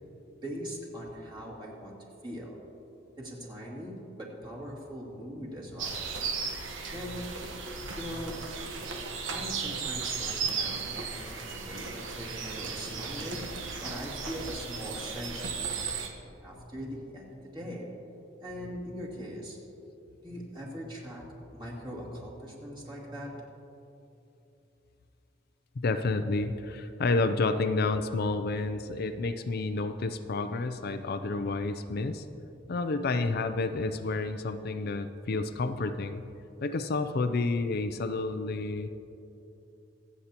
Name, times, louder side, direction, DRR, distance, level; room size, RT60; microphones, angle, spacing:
voice 1, 0.4-2.0 2.2-2.6 3.2-6.0 6.9-7.5 8.0-8.5 9.3-17.9 18.4-19.6 20.2-23.4 32.6-32.7, equal, 25° right, -4 dB, 2.4 m, -41 dB
sound 1, 5.8-16.1, right 5 dB, 85° right, 1.2 m, -36 dB
voice 2, 25.8-32.3 32.7-36.2 36.6-38.9, left 3 dB, 55° left, 8 dB, 0.5 m, -30 dB
24.5 x 8.3 x 2.9 m, 2.8 s
head